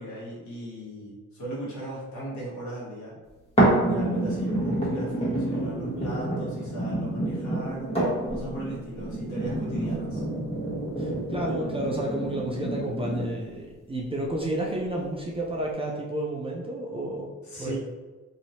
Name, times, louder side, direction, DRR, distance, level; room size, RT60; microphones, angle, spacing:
voice 1, 0.0-3.2 3.8-7.9 8.3-10.2 17.4-17.8, right 1 dB, 70° left, -6 dB, 1.4 m, -37 dB
sound 1, 3.6-13.6 14.1-14.2, right 1 dB, 20° left, 1.2 m, -28 dB
voice 2, 11.0-17.3 17.6-17.8, right 1 dB, 20° right, -2 dB, 0.4 m, -31 dB
3.0 x 2.7 x 2.7 m, 1.3 s
cardioid pair, 90°, 30 cm